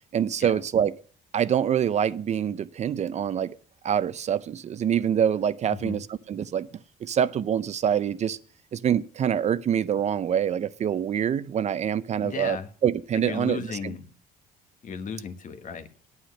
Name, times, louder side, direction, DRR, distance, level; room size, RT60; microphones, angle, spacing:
voice 1, 0.1-0.9 1.3-3.6 3.8-6.7 7.0-8.4 8.7-12.6 12.8-13.9, right 9 dB, 40° right, 0.5 m, -25 dB
voice 2, 12.2-12.7 13.1-14.0 14.8-15.9, left 6 dB, 50° left, 1.4 m, -35 dB
9.7 x 8.9 x 6.4 m
cardioid pair, 110°, 17 cm